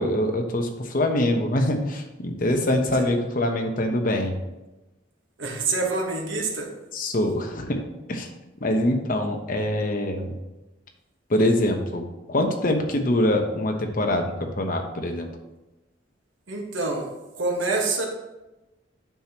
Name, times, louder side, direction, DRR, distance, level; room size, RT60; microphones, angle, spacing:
voice 1, 0.0-4.4 6.9-7.8 8.1-8.3 8.6-10.3 11.3-12.0 12.3-15.3, left 1 dB, 45° left, 4 dB, 0.9 m, -24 dB
voice 2, 5.4-6.7 8.7-8.8 16.5-17.0 17.3-18.1, right 3 dB, 85° right, 1 dB, 1.4 m, -26 dB
9.1 x 6.0 x 2.9 m, 1.0 s
head